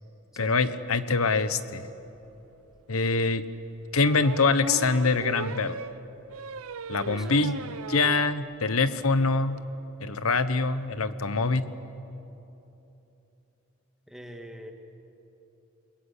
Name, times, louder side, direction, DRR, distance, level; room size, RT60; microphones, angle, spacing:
voice 1, 0.4-1.9 2.9-3.4 3.9-5.8 6.9-7.6 7.9-9.6 10.0-11.7, left 4 dB, 85° left, 12 dB, 1.1 m, -24 dB
sound 1, 2.2-2.3 2.7-2.8 4.0-8.3 8.7-8.8 9.0-9.1 9.3-9.6, right 3 dB, 90° right, 0.8 m, -37 dB
voice 2, 14.1-14.7, equal, ahead, 3 dB, 1.9 m, -43 dB
28.5 x 22.0 x 8.3 m, 3.0 s
head